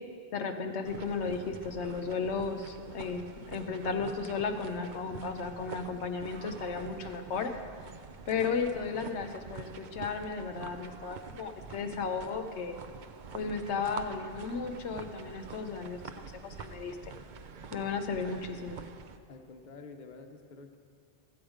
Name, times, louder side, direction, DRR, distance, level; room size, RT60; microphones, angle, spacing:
voice 1, 0.3-7.6 8.3-12.8 13.3-17.0 17.7-18.8, left 5 dB, 80° left, 6 dB, 1.0 m, -34 dB
sound 1, 0.8-19.2, right 5 dB, 55° right, 0.6 m, -46 dB
voice 2, 19.3-20.8, left 4 dB, 45° left, 5 dB, 0.9 m, -49 dB
13.5 x 7.9 x 5.0 m, 2.3 s
omnidirectional pair, 1.1 m